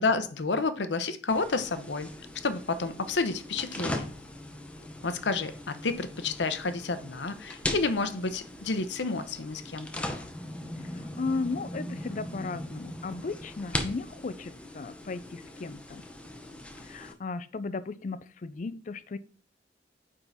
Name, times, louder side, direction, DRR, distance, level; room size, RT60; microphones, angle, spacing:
voice 1, 0.0-2.1 2.4-4.1 5.0-10.0, left 3 dB, 85° left, 0.8 m, -30 dB
sound 1, 1.3-17.1, left 1 dB, 5° left, 0.7 m, -39 dB
voice 2, 11.2-16.1 16.8-19.2, left 4 dB, 45° left, 0.4 m, -35 dB
9.0 x 3.8 x 4.0 m
head